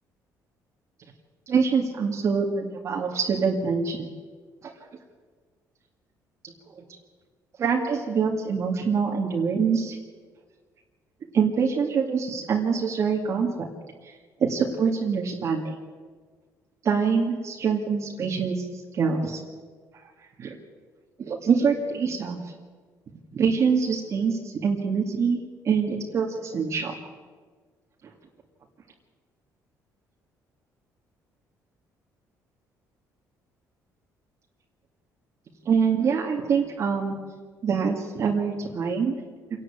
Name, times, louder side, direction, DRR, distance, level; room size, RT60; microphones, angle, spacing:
voice 1, 1.5-4.1 4.6-4.7 6.8-6.9 7.6-10.0 11.3-13.7 14.0-14.1 14.4-15.6 16.8-19.4 20.4-20.6 21.2-22.4 23.3-26.9 35.7-37.2 37.6-39.1, right 5 dB, 45° right, 0 dB, 2.2 m, -25 dB
26.5 x 11.5 x 8.8 m, 1.5 s
cardioid pair, 125°, 7 cm